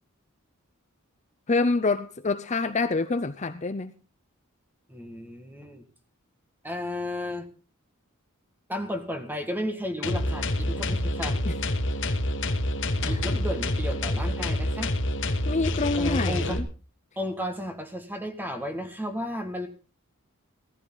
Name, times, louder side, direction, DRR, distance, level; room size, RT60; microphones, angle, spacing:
voice 1, 1.5-3.9 11.4-11.6 13.0-13.4 15.5-16.6, left 3 dB, 35° left, 0.6 m, -27 dB
voice 2, 4.9-5.8 6.6-7.5 8.7-11.4 13.0-14.9 16.0-16.6 17.2-19.7, equal, 10° right, 1.9 m, -33 dB
sound 1, 10.0-16.6, left 1 dB, 60° left, 1.5 m, -27 dB
17.5 x 14.0 x 4.0 m
head